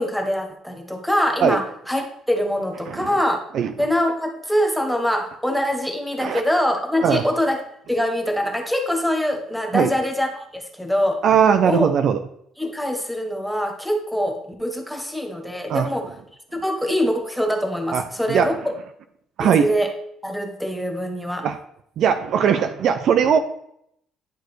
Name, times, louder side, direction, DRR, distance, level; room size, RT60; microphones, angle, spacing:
voice 1, 0.0-3.4 3.8-7.6 7.9-11.2 11.6-11.9 12.6-16.1 16.5-18.7 19.4-19.9 20.2-21.5, equal, ahead, 3 dB, 0.8 m, -24 dB
voice 2, 2.9-3.2 3.5-3.7 6.2-6.4 7.0-7.2 9.7-9.9 11.2-12.2 15.7-15.9 17.9-18.6 19.4-19.7 21.4-21.6 22.0-23.4, right 7 dB, 50° right, 9 dB, 0.4 m, -19 dB
10.5 x 4.4 x 3.1 m, 0.72 s
cardioid pair, 165°, 0 cm